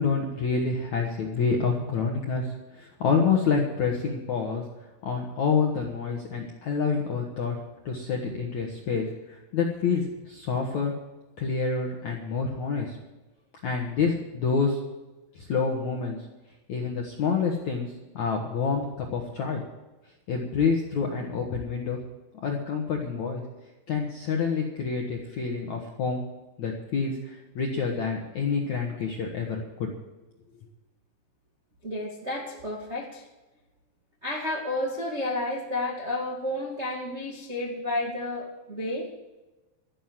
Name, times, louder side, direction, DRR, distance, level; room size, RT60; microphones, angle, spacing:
voice 1, 0.0-4.6 5.0-7.6 7.8-10.9 11.4-13.0 13.6-14.8 15.3-16.2 16.7-19.6 20.3-22.0 22.4-23.4 23.9-26.2 26.6-29.9, left 5 dB, 70° left, 0 dB, 1.7 m, -27 dB
voice 2, 31.8-33.2 34.2-39.1, left 1 dB, 80° right, -2 dB, 0.6 m, -31 dB
13.5 x 11.0 x 7.6 m, 1.1 s
omnidirectional pair, 5.8 m